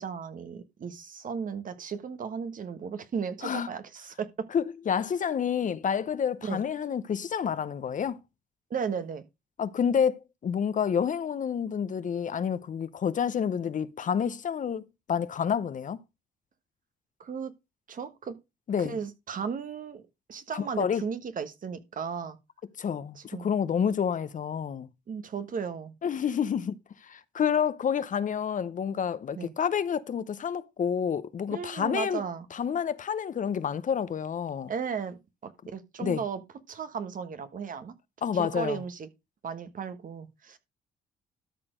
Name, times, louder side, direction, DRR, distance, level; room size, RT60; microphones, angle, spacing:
voice 1, 0.0-4.5 6.4-6.6 8.7-9.2 17.2-17.5 17.9-18.3 18.8-20.0 20.3-22.4 23.1-23.5 25.1-25.9 29.3-29.5 31.5-32.4 34.7-36.4 36.7-37.9 38.3-39.1 39.4-40.6, right 6 dB, 50° right, 1.3 m, -35 dB
voice 2, 4.5-8.2 9.6-16.0 18.7-19.0 20.5-21.0 22.8-24.9 26.0-26.7 27.0-32.2 32.5-34.7 36.0-36.2 38.2-38.8, left 7 dB, 50° left, 0.8 m, -29 dB
13.0 x 4.4 x 5.1 m
supercardioid pair, 70°, 17 cm